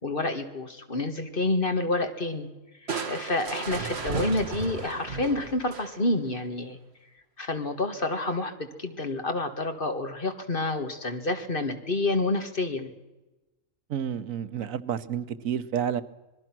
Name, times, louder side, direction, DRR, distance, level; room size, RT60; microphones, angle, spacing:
voice 1, 0.0-2.5 3.1-6.8 7.4-12.9, left 2 dB, 40° left, 6 dB, 2.1 m, -28 dB
Crushing, 2.9-6.3, right 4 dB, 55° right, 1.9 m, -34 dB
voice 2, 13.9-16.0, right 8 dB, 90° right, 13 dB, 1.3 m, -30 dB
26.0 x 20.5 x 6.1 m, 1.1 s
omnidirectional pair, 1.4 m